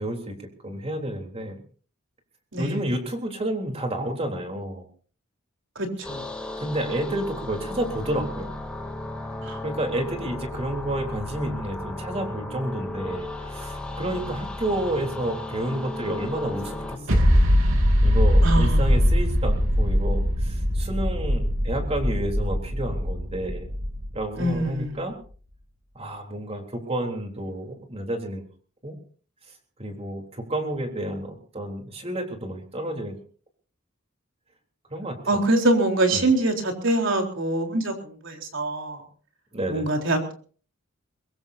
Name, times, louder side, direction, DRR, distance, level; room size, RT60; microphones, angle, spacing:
voice 1, 0.0-1.6 2.6-4.9 6.6-8.5 9.6-17.3 18.0-23.7 24.1-25.1 26.0-28.4 28.8-29.0 29.8-33.2 34.9-35.4 36.1-36.3 39.5-39.9, right 1 dB, 30° right, 3 dB, 3.6 m, -30 dB
voice 2, 5.8-6.2 9.4-9.6 18.4-19.0 24.4-25.0 35.3-39.0 39.7-40.3, right 2 dB, 65° right, 3 dB, 4.0 m, -24 dB
sound 1, 6.0-17.0, left 1 dB, 5° left, 2.7 m, -35 dB
sound 2, 17.1-24.6, equal, 85° right, 3.0 m, -21 dB
22.5 x 22.0 x 2.8 m, 0.42 s
head